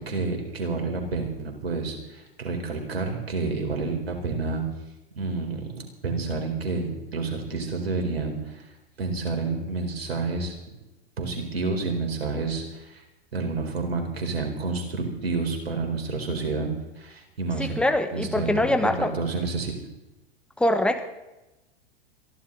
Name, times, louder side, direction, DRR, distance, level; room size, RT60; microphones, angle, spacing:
voice 1, 0.0-4.6 5.2-8.6 9.0-10.5 11.2-13.0 13.3-16.7 17.0-17.8 18.1-18.5 19.0-19.7, right 3 dB, 85° right, 3 dB, 4.4 m, -29 dB
voice 2, 17.6-19.1 20.6-21.1, left 1 dB, 5° left, 7 dB, 1.7 m, -23 dB
23.0 x 15.5 x 4.0 m, 1.0 s
hypercardioid pair, 100°, 30 cm